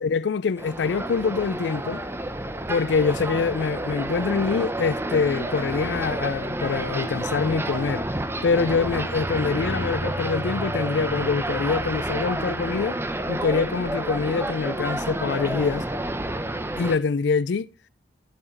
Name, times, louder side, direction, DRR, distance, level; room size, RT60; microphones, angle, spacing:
voice 1, 0.0-2.0 2.7-8.1 8.4-13.0 13.3-15.9 16.8-17.7, left 5 dB, 65° left, 0.4 m, -25 dB
sound 1, 0.6-17.0, right 1 dB, 15° right, 0.8 m, -29 dB
11.5 x 7.1 x 3.9 m
head